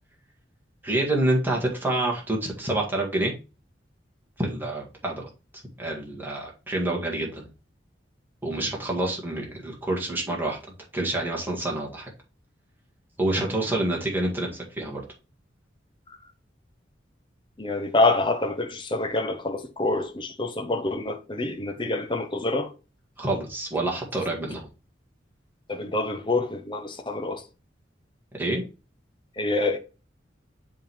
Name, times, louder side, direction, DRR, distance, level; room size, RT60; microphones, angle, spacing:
voice 1, 0.8-3.3 4.4-5.3 5.8-7.5 8.4-10.6 10.9-12.1 13.2-15.0 21.8-21.9 23.2-24.6 28.4-28.6, right 1 dB, 10° right, 1.9 m, -27 dB
voice 2, 17.6-22.7 25.7-27.4 29.4-29.8, left 2 dB, 25° left, 0.9 m, -26 dB
7.2 x 3.7 x 4.6 m
head